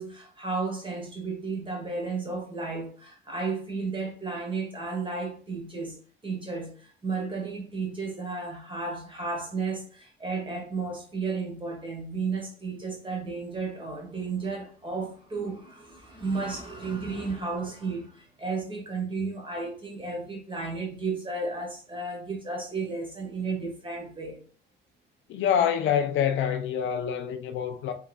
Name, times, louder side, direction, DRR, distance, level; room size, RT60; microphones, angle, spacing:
voice 1, 0.0-24.4, right 4 dB, 25° right, 1.4 m, -33 dB
voice 2, 25.3-27.9, left 8 dB, 75° left, 0.5 m, -26 dB
3.5 x 3.1 x 2.2 m
cardioid pair, 90°, 20 cm